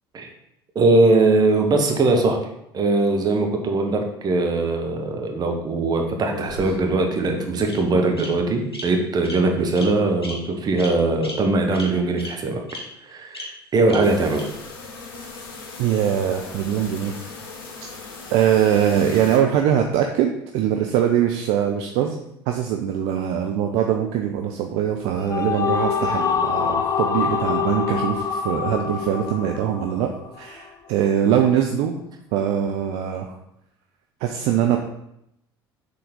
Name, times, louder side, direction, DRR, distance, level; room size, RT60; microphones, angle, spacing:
voice 1, 0.7-2.4 2.7-12.6 13.1-13.5 13.7-14.4, right 2 dB, 30° right, 3 dB, 1.1 m, -20 dB
Bird vocalization bird call bird song, 6.2-7.0 7.7-7.8 8.2-8.3 8.7-8.8 9.2-9.4 9.7-9.9 10.2-10.3 10.8-10.9 11.2-11.3 11.7-11.8 12.2-12.3 12.7-12.8 13.3-13.4 13.9-14.0 14.3-14.4, left 1 dB, 90° left, 0.9 m, -35 dB
sound 1, 14.0-19.4, left 4 dB, 65° left, 1.1 m, -38 dB
voice 2, 15.8-17.2 18.3-22.2 22.5-30.1 30.4-32.0 32.3-33.4 34.2-34.8, right 9 dB, 50° right, 4 dB, 0.5 m, -22 dB
sound 2, 24.9-30.4, left 6 dB, 25° left, 0.5 m, -25 dB
6.6 x 3.8 x 3.7 m, 0.79 s
figure-of-eight pair, 65°, 13 cm